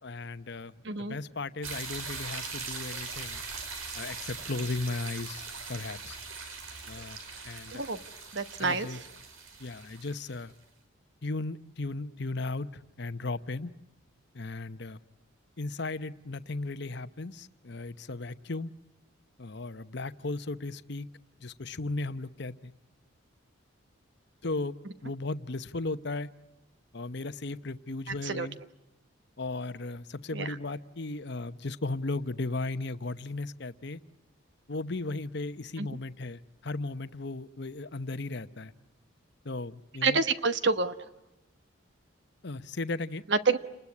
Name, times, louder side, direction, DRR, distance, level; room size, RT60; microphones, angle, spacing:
voice 1, 0.0-3.4 3.9-6.2 6.9-7.2 7.4-7.9 8.6-9.0 9.6-10.5 11.2-13.7 14.3-15.0 15.6-18.7 19.4-21.1 21.4-22.7 24.4-24.7 25.0-26.3 26.9-28.6 29.4-34.0 34.7-38.7 39.4-40.2 42.4-43.2, left 2 dB, 55° left, 13 dB, 0.9 m, -36 dB
voice 2, 0.8-1.2 7.7-8.0 8.3-8.9 28.2-28.5 30.3-30.5 35.8-35.9 40.0-40.9 43.3-43.6, right 4 dB, 55° right, 12 dB, 1.2 m, -27 dB
sound 1, 1.6-10.5, right 4 dB, 85° right, 5.1 m, -41 dB
29.5 x 20.5 x 9.7 m, 0.98 s
head